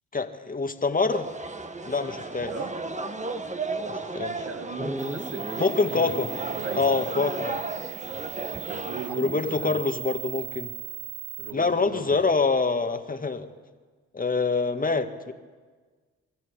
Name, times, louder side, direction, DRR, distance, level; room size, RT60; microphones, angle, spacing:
voice 1, 0.1-1.2 1.9-2.5 4.1-4.3 5.6-6.3 6.7-7.6 9.1-10.7 11.5-13.5 14.1-15.3, left 4 dB, 30° left, 7 dB, 1.9 m, -25 dB
sound 1, 1.1-9.1, right 3 dB, 25° right, 1.6 m, -34 dB
voice 2, 4.1-6.2 6.6-6.9 8.0-8.3 8.7-9.8 11.4-12.2, right 5 dB, 55° right, 6 dB, 2.0 m, -38 dB
Dog, 4.8-7.5 7.8-7.9 9.0-9.6 11.7-11.8, right 1 dB, 5° right, 1.3 m, -38 dB
sound 2, 5.0-11.5, right 15 dB, 75° right, 1.0 m, -39 dB
23.0 x 13.5 x 8.6 m, 1.4 s
supercardioid pair, 50°, 30 cm